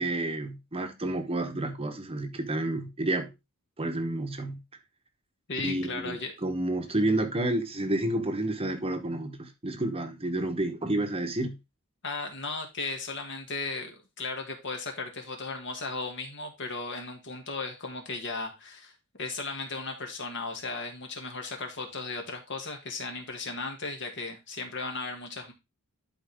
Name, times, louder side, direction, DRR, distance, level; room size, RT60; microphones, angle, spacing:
voice 1, 0.0-3.3 3.8-4.6 5.6-11.6, right 1 dB, 25° right, 1.0 m, -30 dB
voice 2, 5.5-6.3 12.0-18.9 19.2-25.5, left 3 dB, 55° left, 2.0 m, -36 dB
11.5 x 4.5 x 3.5 m
head